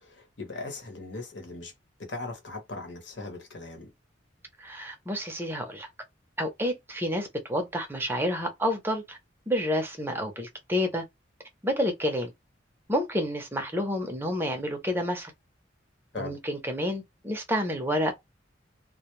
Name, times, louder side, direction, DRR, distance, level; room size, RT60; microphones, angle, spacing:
voice 1, 0.0-1.7 2.0-3.9 16.1-16.4, left 3 dB, 65° left, 1.0 m, -39 dB
voice 2, 4.6-5.9 6.4-9.2 9.5-11.0 11.6-12.3 12.9-15.3 16.2-18.2, equal, 10° right, 0.6 m, -29 dB
2.2 x 2.1 x 3.0 m
head